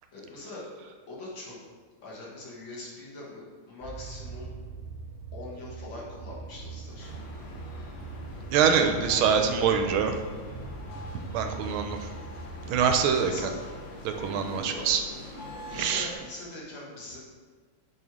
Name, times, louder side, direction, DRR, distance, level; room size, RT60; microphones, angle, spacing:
voice 1, 0.1-0.6 1.1-1.6 2.0-4.5 5.3-7.1 8.7-9.7 13.2-13.5 14.5-14.8 15.6-17.2, left 2 dB, 65° left, -5 dB, 2.0 m, -42 dB
sound 1, 3.8-14.0, right 4 dB, 30° right, 1.0 m, -42 dB
sound 2, 6.4-16.3, left 2 dB, 45° left, 1.5 m, -50 dB
sound 3, 7.0-16.1, left 2 dB, 85° left, 0.6 m, -44 dB
voice 2, 8.5-10.2 11.1-12.1 12.7-13.3 14.0-15.0 15.7-16.1, right 7 dB, 80° right, 5 dB, 1.4 m, -25 dB
6.3 x 4.4 x 3.6 m, 1.5 s
omnidirectional pair, 2.3 m